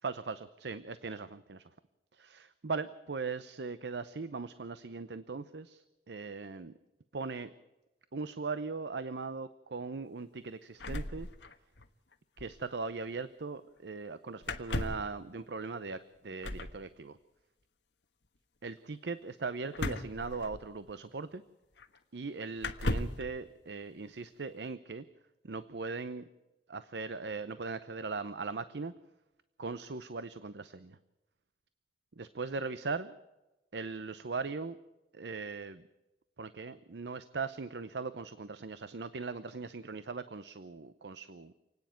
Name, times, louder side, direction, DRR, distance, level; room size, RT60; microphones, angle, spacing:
voice 1, 0.0-1.7 2.1-6.7 7.1-7.5 8.1-11.3 12.4-17.2 18.6-21.4 22.1-25.0 25.4-26.3 26.7-28.9 29.6-31.0 32.2-33.2 33.7-34.8 35.1-35.8 36.4-41.5, right 4 dB, 70° right, 13 dB, 0.7 m, -39 dB
sound 1, 10.8-11.9 12.1-12.2 12.4-12.6 14.4-15.1 16.4-16.8 19.7-20.9 21.8-21.9 22.6-23.3, left 2 dB, 80° left, 1.4 m, -36 dB
29.0 x 9.8 x 9.2 m, 1.0 s
head